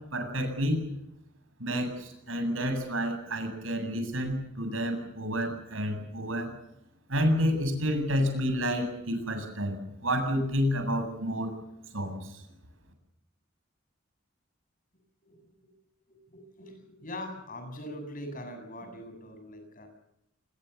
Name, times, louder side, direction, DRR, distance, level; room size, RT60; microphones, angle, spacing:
voice 1, 0.1-0.8 1.6-6.5 7.1-9.7 10.0-11.5 11.9-12.4, equal, 80° right, 7 dB, 8.0 m, -29 dB
voice 2, 15.2-15.7 16.1-19.9, left 1 dB, 45° left, 6 dB, 7.8 m, -42 dB
26.5 x 21.5 x 7.1 m, 0.81 s
head